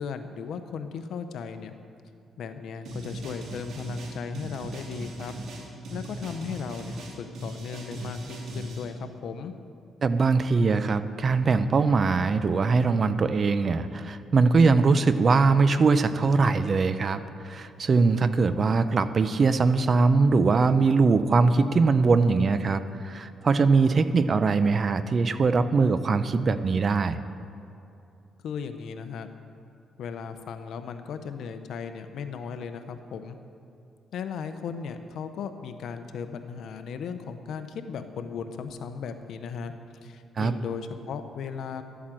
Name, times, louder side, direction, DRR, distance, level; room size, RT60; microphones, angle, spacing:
voice 1, 0.0-1.7 2.4-5.3 5.9-9.5 28.4-29.3 30.0-33.4 34.1-39.7 40.0-41.8, left 6 dB, 70° left, 8 dB, 0.9 m, -36 dB
sound 1, 2.8-8.8, right 1 dB, 70° right, 2.8 m, -38 dB
voice 2, 10.0-27.2 40.4-40.5, right 4 dB, 45° right, 12 dB, 0.7 m, -22 dB
12.0 x 8.5 x 7.7 m, 2.7 s
cardioid pair, 90°, 0 cm